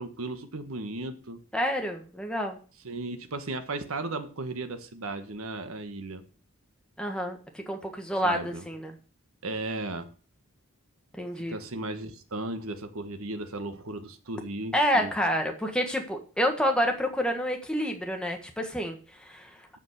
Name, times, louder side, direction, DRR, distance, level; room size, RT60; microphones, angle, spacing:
voice 1, 0.0-1.4 2.8-6.2 8.2-8.6 9.4-10.1 11.4-15.1, right 2 dB, 75° right, 1.4 m, -35 dB
voice 2, 1.5-2.6 7.0-8.9 11.2-11.6 14.7-19.8, equal, 5° left, 1.6 m, -29 dB
14.0 x 5.3 x 6.6 m
head